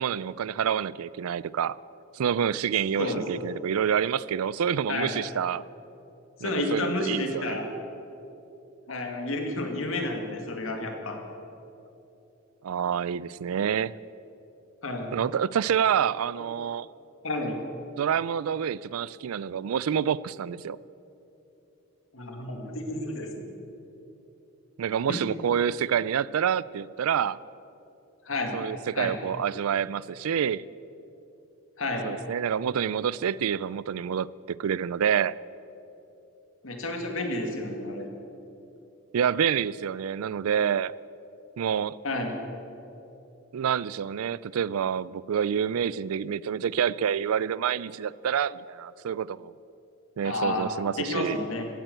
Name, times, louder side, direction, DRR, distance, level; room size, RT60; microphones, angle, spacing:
voice 1, 0.0-1.8 2.1-5.6 6.4-7.6 12.6-13.9 15.1-16.9 18.0-20.8 24.8-27.4 28.5-30.7 32.0-35.3 39.1-40.9 41.6-42.0 43.5-49.5 50.2-51.4, right 8 dB, 85° right, 20 dB, 0.4 m, -27 dB
voice 2, 6.4-7.7 8.9-11.2 14.8-15.1 17.2-17.6 22.1-23.5 25.1-25.2 28.2-28.6 29.0-29.1 31.8-32.1 36.6-38.1 42.0-42.3 50.2-50.7 51.0-51.7, left 2 dB, 70° left, 3 dB, 2.1 m, -30 dB
16.0 x 9.0 x 7.9 m, 2.9 s
head